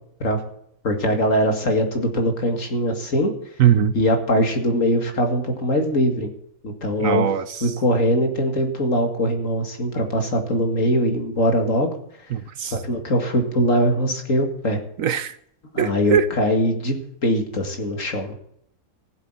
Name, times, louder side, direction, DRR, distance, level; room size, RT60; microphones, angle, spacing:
voice 1, 0.8-3.3 3.9-6.3 6.6-7.3 7.6-11.9 12.6-14.8 15.7-18.4, equal, 55° left, 2.6 m, -21 dB
voice 2, 3.6-3.9 7.0-7.4 12.3-12.7 15.0-15.3 15.8-16.3, right 9 dB, 65° right, 1.1 m, -20 dB
15.0 x 8.0 x 8.9 m
omnidirectional pair, 1.6 m